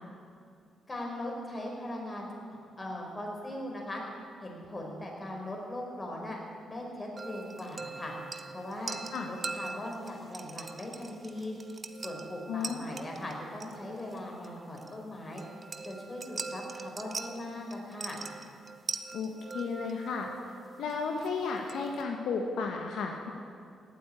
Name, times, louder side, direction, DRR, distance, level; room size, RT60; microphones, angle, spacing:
voice 1, 0.9-4.0 4.4-6.4 6.7-8.1 8.5-9.0 9.2-11.6 12.0-15.4 15.8-18.2, left 1 dB, 25° left, -1 dB, 5.1 m, -39 dB
sound 1, 7.2-22.0, right 4 dB, 40° right, 1.0 m, -43 dB
voice 2, 12.5-12.9 19.1-20.3 20.8-23.3, left 5 dB, 75° left, 2 dB, 1.4 m, -33 dB
17.5 x 8.0 x 9.8 m, 2.4 s
cardioid pair, 65°, 0 cm